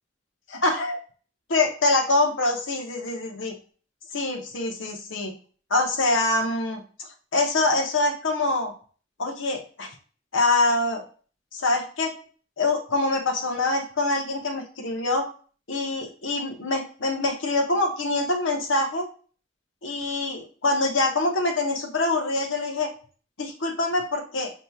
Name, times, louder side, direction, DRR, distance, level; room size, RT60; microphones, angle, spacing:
voice 1, 0.5-1.0 1.5-3.5 4.1-5.3 5.7-8.7 9.2-9.9 10.3-11.0 11.5-12.1 12.6-15.3 15.7-19.1 19.8-22.9 23.4-24.5, left 2 dB, 80° left, 2 dB, 1.0 m, -25 dB
6.8 x 3.0 x 2.3 m, 0.40 s
head